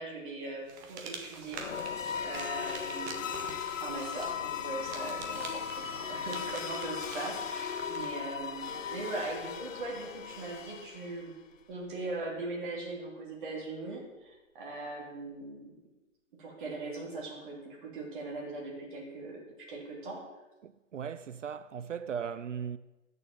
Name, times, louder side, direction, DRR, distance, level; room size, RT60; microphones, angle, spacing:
voice 1, 0.0-3.4 3.8-11.3 11.7-15.7 16.4-19.4 19.7-20.2, right 2 dB, 40° right, 3.3 m, -40 dB
sound 1, 0.7-8.2, right 5 dB, 15° right, 0.8 m, -46 dB
sound 2, 1.5-11.4, left 7 dB, 70° left, 0.7 m, -37 dB
voice 2, 20.6-22.8, right 7 dB, 70° right, 0.5 m, -38 dB
9.3 x 6.5 x 7.4 m
figure-of-eight pair, 135°, 39 cm